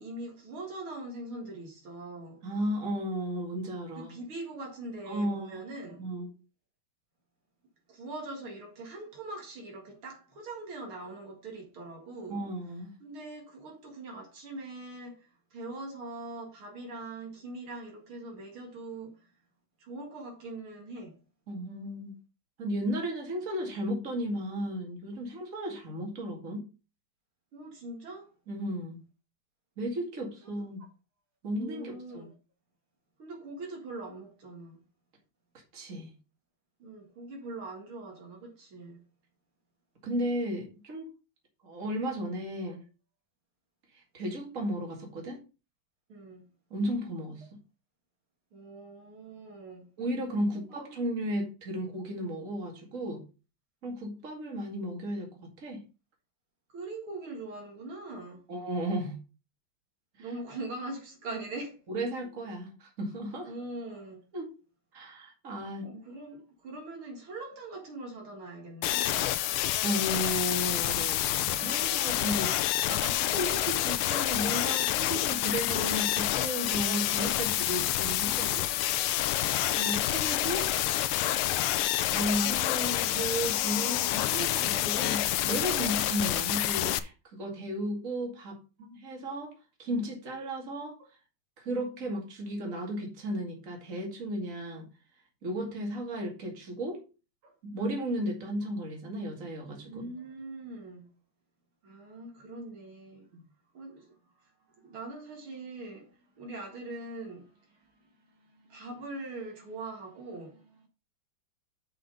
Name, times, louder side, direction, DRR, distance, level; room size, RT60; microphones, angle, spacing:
voice 1, 0.0-2.4 4.0-6.0 7.9-12.4 13.0-19.3 19.8-21.2 27.5-28.3 30.4-30.6 31.5-32.3 33.2-34.8 36.8-39.0 46.1-46.4 48.5-49.9 56.7-58.4 60.2-61.8 63.4-64.2 65.8-69.3 76.2-76.3 77.0-77.2 97.4-97.5 99.9-101.1 101.8-103.3 103.7-104.2 104.4-107.9 108.3-110.9, right 2 dB, 75° right, 2.8 m, -42 dB
voice 2, 2.4-4.2 5.1-5.6 6.0-6.3 12.3-12.9 21.5-22.1 22.6-26.7 28.5-29.0 29.8-30.8 31.4-32.3 35.7-36.1 40.0-41.1 41.6-42.8 44.1-45.4 46.7-47.5 50.0-53.2 53.8-55.8 58.5-59.2 60.2-60.3 61.9-63.5 64.3-64.5 64.9-66.0 69.8-78.7 79.8-80.7 82.1-89.5 89.8-91.0 91.6-94.9 95.4-97.0 97.6-100.1 103.3-103.4, right 1 dB, 40° right, 2.5 m, -34 dB
sound 1, 68.8-87.0, left 13 dB, 80° left, 1.5 m, -28 dB
6.4 x 5.8 x 5.4 m
omnidirectional pair, 2.3 m